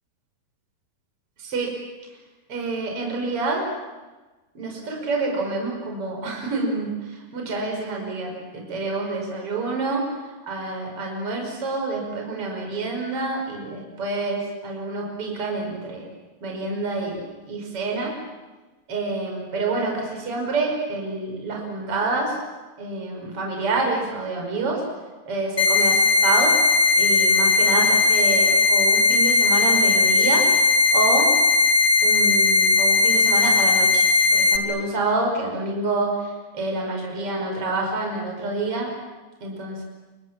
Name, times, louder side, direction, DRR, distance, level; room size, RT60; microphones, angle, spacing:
voice 1, 1.4-1.7 2.5-3.7 4.5-10.1 10.4-16.1 16.4-17.2 17.4-18.2 18.9-22.3 22.8-24.8 25.3-26.6 26.9-30.5 30.9-31.3 32.0-38.9 39.4-39.8, right 3 dB, 35° right, 1 dB, 6.1 m, -27 dB
sound 1, 25.6-34.6, left 3 dB, 20° left, 1.5 m, -18 dB
29.0 x 26.5 x 7.6 m, 1.2 s
omnidirectional pair, 4.6 m